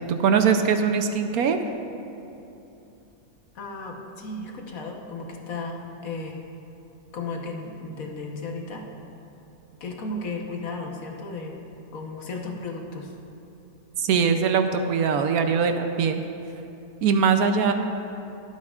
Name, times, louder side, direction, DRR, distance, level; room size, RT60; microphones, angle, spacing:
voice 1, 0.1-1.6 14.0-16.2 17.0-17.7, right 6 dB, 70° right, 7 dB, 1.0 m, -21 dB
voice 2, 3.5-6.4 7.1-8.9 9.8-11.6 11.9-13.1 17.4-17.7, left 2 dB, 60° left, 1 dB, 1.4 m, -34 dB
22.5 x 8.6 x 2.4 m, 2.9 s
omnidirectional pair, 1.7 m